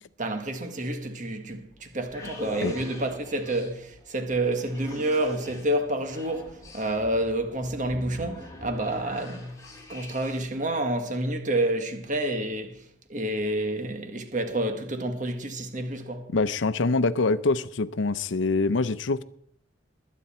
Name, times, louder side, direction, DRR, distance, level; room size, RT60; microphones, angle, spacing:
voice 1, 0.2-9.6 9.9-12.8 13.1-16.3, right 1 dB, 40° right, 1.6 m, -29 dB
sound 1, 1.7-10.6, left 1 dB, 20° left, 3.0 m, -44 dB
voice 2, 16.3-19.2, left 3 dB, 85° left, 0.7 m, -25 dB
20.0 x 9.3 x 4.3 m
head